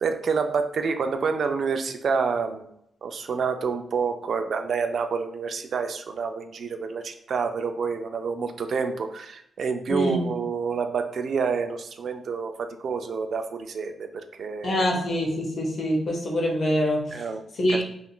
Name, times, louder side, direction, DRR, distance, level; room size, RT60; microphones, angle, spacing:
voice 1, 0.0-2.7 3.0-14.9 17.1-17.4 17.7-17.8, right 5 dB, 65° right, 7 dB, 0.3 m, -28 dB
voice 2, 9.9-10.4 14.6-17.2 17.6-17.8, equal, 60° left, 0 dB, 0.8 m, -25 dB
3.6 x 2.4 x 2.3 m, 0.74 s
cardioid pair, 90°, 0 cm